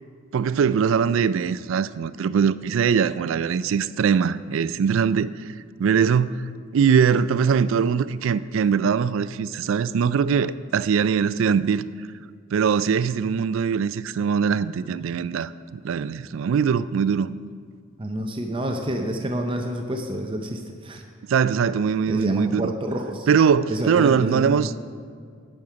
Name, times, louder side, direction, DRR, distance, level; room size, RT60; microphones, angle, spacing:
voice 1, 0.3-5.3 5.8-6.3 6.7-11.8 12.5-17.3 21.3-22.7 23.3-24.8, right 6 dB, 65° right, 0.3 m, -21 dB
voice 2, 18.0-21.0 22.1-23.3 23.7-24.7, right 1 dB, 25° right, 0.6 m, -28 dB
11.0 x 6.5 x 5.7 m
head